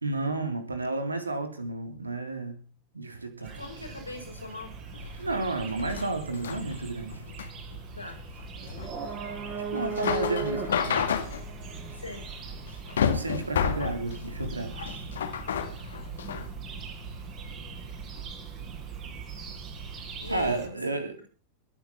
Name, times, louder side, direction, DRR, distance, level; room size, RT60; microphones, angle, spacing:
voice 1, 0.0-2.6 2.9-3.6 5.2-7.2 9.7-11.1 13.0-14.8 15.2-15.3 20.3-21.2, right 3 dB, 80° right, 7 dB, 3.4 m, -32 dB
voice 2, 3.4-4.7 7.9-8.2 11.9-12.2 20.2-21.0, left 2 dB, 85° left, 3 dB, 5.3 m, -40 dB
sound 1, 3.4-20.7, right 4 dB, 35° right, 5.8 m, -39 dB
sound 2, 4.9-16.5, left 7 dB, 65° left, 2.2 m, -32 dB
21.0 x 9.8 x 5.8 m, 0.37 s
figure-of-eight pair, 90°, 0 cm